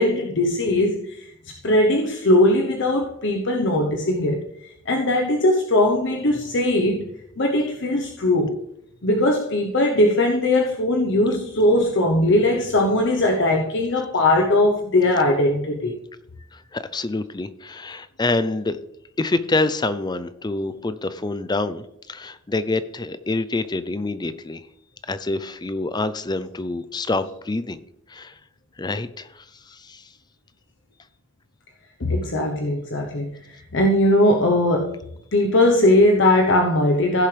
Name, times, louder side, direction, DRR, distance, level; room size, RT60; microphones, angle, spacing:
voice 1, 0.0-1.3 1.6-8.6 9.0-16.0 32.0-35.0 35.3-37.3, left 1 dB, 60° left, 2 dB, 1.0 m, -20 dB
voice 2, 16.5-18.8 19.2-24.6 25.1-27.8 28.1-28.4 28.8-30.1, left 2 dB, 20° left, 13 dB, 0.5 m, -26 dB
16.0 x 7.0 x 3.4 m, 0.76 s
head